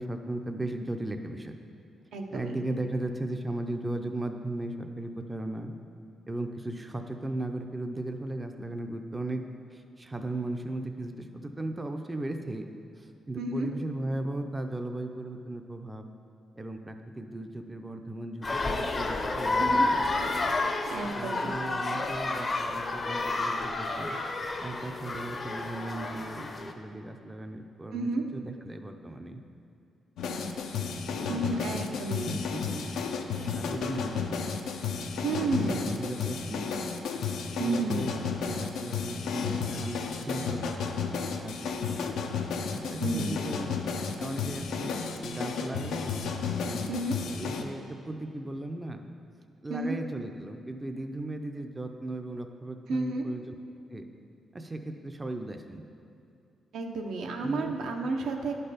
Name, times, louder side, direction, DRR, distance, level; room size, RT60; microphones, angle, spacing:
voice 1, 0.0-1.5 2.3-5.7 6.3-9.4 9.7-12.6 13.0-16.1 16.6-20.0 21.0-24.2 24.6-29.4 31.2-31.5 31.9-33.0 33.4-34.4 35.4-36.9 37.6-42.0 42.7-43.8 44.2-46.2 46.6-46.9 47.3-49.0 49.6-53.5 53.9-54.0 54.5-55.8 57.4-57.7, right 1 dB, 15° right, 5 dB, 0.4 m, -37 dB
voice 2, 2.1-2.5 13.4-13.7 19.6-19.9 20.9-21.5 27.9-28.2 31.3-32.4 35.2-35.9 37.6-38.1 43.0-43.4 46.9-47.2 49.7-50.0 52.9-53.3 56.7-58.5, right 3 dB, 85° right, 2 dB, 0.8 m, -31 dB
sound 1, 18.4-26.7, left 2 dB, 35° left, 0.6 m, -30 dB
sound 2, 30.2-47.6, left 5 dB, 85° left, 0.6 m, -32 dB
11.0 x 4.5 x 5.0 m, 2.6 s
cardioid pair, 105°, 0 cm